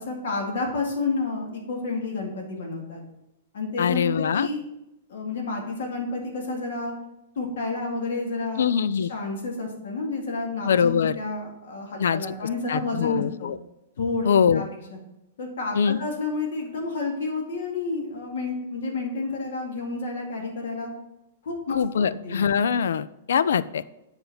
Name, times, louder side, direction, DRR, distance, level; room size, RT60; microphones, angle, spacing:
voice 1, 0.0-3.0 3.5-4.6 5.1-6.9 7.4-8.7 8.9-13.5 14.0-14.6 14.9-15.0 15.4-20.9 21.4-22.4, left 3 dB, 70° left, 1 dB, 2.1 m, -30 dB
voice 2, 3.8-4.5 8.6-9.1 10.6-11.1 12.0-12.3 12.7-13.6 14.2-14.6 15.7-16.0 21.7-23.8, left 7 dB, 90° left, 17 dB, 0.4 m, -23 dB
7.8 x 4.2 x 5.5 m, 0.92 s
hypercardioid pair, 165°, 0 cm